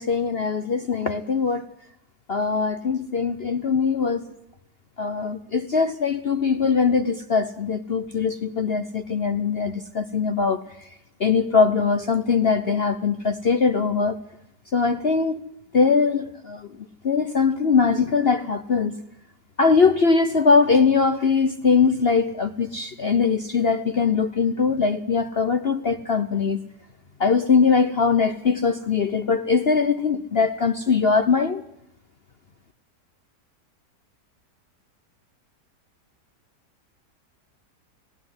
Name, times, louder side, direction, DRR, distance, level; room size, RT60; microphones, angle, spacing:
voice 1, 0.0-1.7 2.3-4.3 5.0-10.6 11.2-14.2 14.7-15.4 15.7-16.7 17.0-19.0 19.6-26.6 27.2-31.6, left 5 dB, 45° left, 9 dB, 1.0 m, -21 dB
18.5 x 17.0 x 9.7 m, 0.78 s
omnidirectional pair, 1.8 m